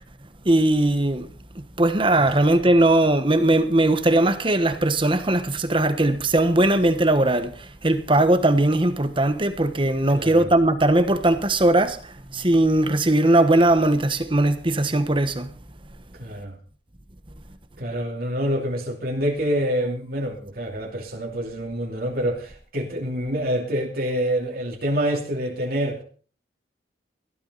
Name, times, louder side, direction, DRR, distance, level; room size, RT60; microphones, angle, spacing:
voice 1, 0.4-1.3 1.8-15.5, right 1 dB, 30° right, 1.3 m, -19 dB
voice 2, 10.1-10.5 16.1-16.6 17.8-26.0, equal, 55° right, 2.7 m, -26 dB
17.5 x 13.0 x 4.2 m
head